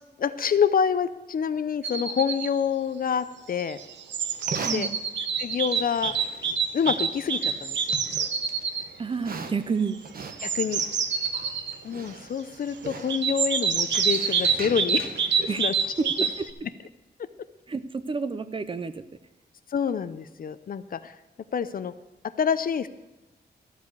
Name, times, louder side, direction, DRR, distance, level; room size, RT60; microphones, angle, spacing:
voice 1, 0.2-3.8 4.7-4.9 5.4-6.1 6.7-8.0 10.4-10.8 11.8-15.2 15.6-15.7 19.7-21.1 21.5-21.9 22.4-22.9, left 7 dB, 55° left, 13 dB, 0.5 m, -27 dB
sound 1, 1.8-2.5 3.6-8.9 10.2-11.7 13.1-16.5, right 6 dB, 85° right, 0.8 m, -27 dB
Livestock farm animals working animals, 4.3-16.5, right 4 dB, 55° right, 1.0 m, -42 dB
voice 2, 4.6-5.0 9.0-10.0 15.5-15.6 16.0-16.5 17.7-19.0, right 4 dB, 30° right, 12 dB, 0.5 m, -30 dB
14.0 x 4.9 x 8.2 m, 1.1 s
wide cardioid pair, 155°, 18 cm